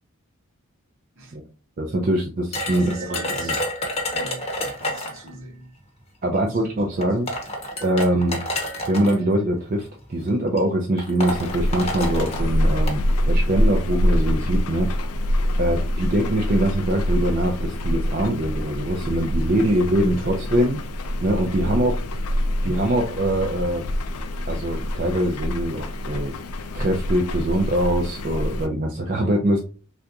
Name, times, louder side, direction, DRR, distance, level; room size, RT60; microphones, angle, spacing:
voice 1, 1.8-3.5 6.2-7.3 7.8-8.4 8.9-13.0 13.3-14.9 15.6-20.8 21.2-22.0 22.6-23.8 24.5-26.3 26.7-29.6, right 1 dB, 40° right, 0.4 m, -23 dB
sound 1, 2.5-5.3 6.4-6.5 7.0-9.2 10.1-10.3 10.6-10.7 11.0-13.0, left 1 dB, 25° left, 0.7 m, -29 dB
voice 2, 2.7-3.7 4.1-5.7 6.2-7.2 8.1-8.3 19.5-20.7 21.6-22.0 29.1-29.4, right 1 dB, 60° right, 0.9 m, -41 dB
sound 2, 11.2-28.7, left 1 dB, 80° left, 0.4 m, -25 dB
3.3 x 2.5 x 2.7 m
head